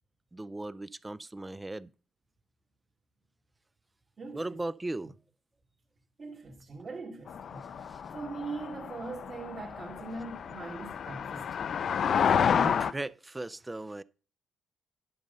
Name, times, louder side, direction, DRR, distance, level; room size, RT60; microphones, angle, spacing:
voice 1, 0.3-1.9 4.3-5.2 7.9-8.0 12.6-14.0, right 2 dB, 15° right, 0.4 m, -37 dB
voice 2, 4.2-4.6 6.2-11.6, right 3 dB, 40° right, 2.3 m, -41 dB
sound 1, 7.3-12.9, left 7 dB, 55° left, 0.5 m, -30 dB
10.5 x 5.4 x 5.3 m
cardioid pair, 90°, 0 cm